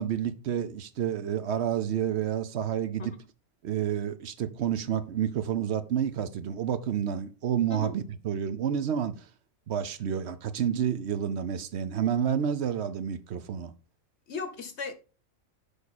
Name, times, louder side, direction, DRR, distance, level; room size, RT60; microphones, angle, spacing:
voice 1, 0.0-3.2 3.6-9.2 9.7-13.7, right 9 dB, 60° right, 0.9 m, -29 dB
voice 2, 14.3-14.9, left 4 dB, 60° left, 1.1 m, -36 dB
6.8 x 4.8 x 4.1 m
omnidirectional pair, 1.3 m